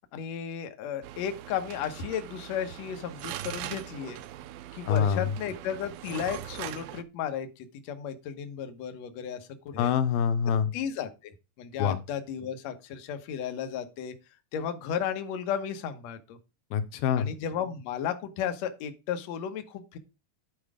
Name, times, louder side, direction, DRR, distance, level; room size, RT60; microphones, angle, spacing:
voice 1, 0.1-4.2 4.7-9.9 10.7-14.1 14.5-16.4 17.2-20.0, left 8 dB, 60° left, 7 dB, 2.0 m, -34 dB
sound 1, 1.0-7.0, right 13 dB, 85° right, 2.5 m, -41 dB
voice 2, 4.9-5.3 9.8-10.7 11.8-12.0 16.7-17.3, left 7 dB, 85° left, 11 dB, 2.7 m, -25 dB
11.0 x 4.8 x 4.9 m, 0.28 s
omnidirectional pair, 4.2 m